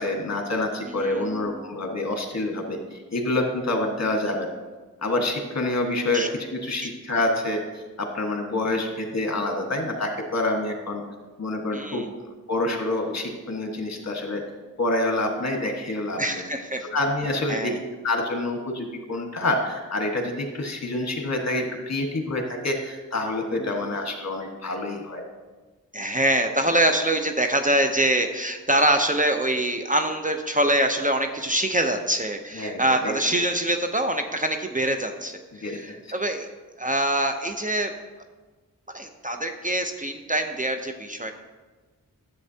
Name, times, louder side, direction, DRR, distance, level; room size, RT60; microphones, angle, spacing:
voice 1, 0.0-4.5 5.0-11.0 11.4-12.0 12.5-14.4 14.8-16.4 16.9-17.7 18.0-25.2 32.5-33.1 35.5-35.9, left 2 dB, 50° left, 3 dB, 1.5 m, -27 dB
voice 2, 1.0-1.3 6.1-6.3 11.7-12.1 16.2-16.9 17.5-17.8 23.6-23.8 25.9-36.5 36.8-37.9 38.9-41.3, right 1 dB, 25° right, 5 dB, 0.7 m, -24 dB
10.5 x 7.8 x 2.8 m, 1.3 s
cardioid pair, 45°, 35 cm